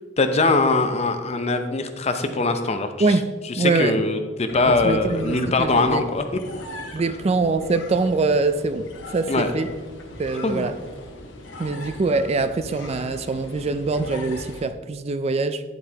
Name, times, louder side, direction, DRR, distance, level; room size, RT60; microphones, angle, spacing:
voice 1, 0.2-2.9 3.6-6.2 9.3-9.5 10.4-10.7, left 3 dB, 35° left, 7 dB, 0.6 m, -22 dB
voice 2, 3.6-4.0 4.7-6.0 6.9-9.7 10.2-10.7 11.6-15.6, right 3 dB, 35° right, 11 dB, 0.3 m, -23 dB
sound 1, 4.5-14.7, left 1 dB, 80° left, 1.2 m, -39 dB
9.5 x 8.0 x 2.9 m, 1.4 s
head